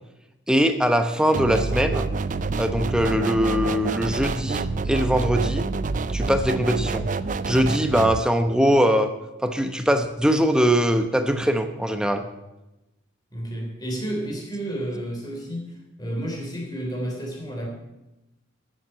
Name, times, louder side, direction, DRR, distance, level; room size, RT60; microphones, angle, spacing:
voice 1, 0.5-2.1 2.6-5.7 6.1-7.1 7.5-9.1 9.4-12.3, equal, 5° right, 7 dB, 0.8 m, -21 dB
sound 1, 1.3-8.2, right 3 dB, 40° right, 0.4 m, -27 dB
voice 2, 13.3-15.7 16.0-17.7, right 1 dB, 20° left, 0 dB, 3.3 m, -31 dB
13.5 x 7.5 x 7.6 m, 0.98 s
head